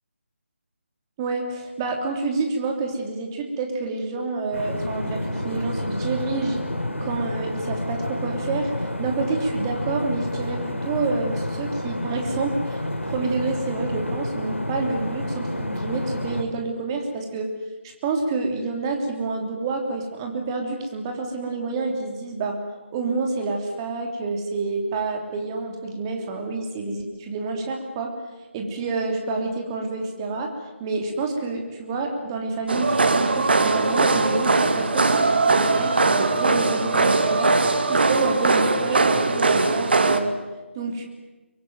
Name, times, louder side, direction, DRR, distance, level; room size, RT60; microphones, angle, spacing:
voice 1, 1.2-6.6 7.0-8.7 9.0-17.5 18.0-22.6 22.9-28.1 28.5-30.5 30.8-37.5 37.9-40.3 40.7-41.0, right 3 dB, 20° right, 3 dB, 3.1 m, -28 dB
sound 1, 4.5-16.4, left 1 dB, 80° left, 4.2 m, -29 dB
sound 2, 32.7-40.2, right 3 dB, 55° right, 2.1 m, -20 dB
23.5 x 22.5 x 9.3 m, 1.1 s
figure-of-eight pair, 155°, 7 cm